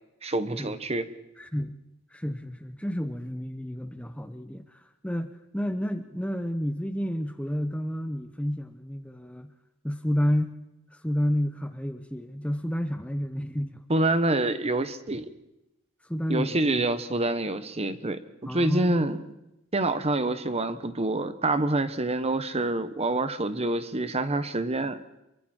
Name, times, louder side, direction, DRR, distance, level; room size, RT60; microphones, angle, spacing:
voice 1, 0.2-1.1 13.9-15.3 16.3-19.2 19.7-25.0, right 2 dB, 30° right, 11 dB, 1.2 m, -26 dB
voice 2, 1.4-1.8 2.1-9.5 9.8-10.6 10.9-13.8 16.1-16.8 18.5-19.2, equal, 5° left, 9 dB, 0.8 m, -30 dB
28.0 x 23.0 x 4.5 m, 0.92 s
head